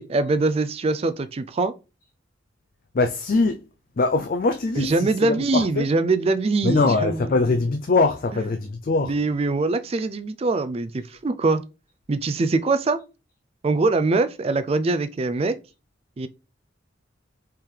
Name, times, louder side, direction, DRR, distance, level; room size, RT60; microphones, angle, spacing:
voice 1, 0.0-1.7 4.8-7.2 9.0-11.6 12.1-13.0 13.6-15.6 16.2-16.3, right 3 dB, 30° right, 0.3 m, -23 dB
voice 2, 2.9-3.6 4.0-5.9 6.6-9.1, left 3 dB, 45° left, 0.4 m, -22 dB
4.4 x 3.7 x 3.2 m
head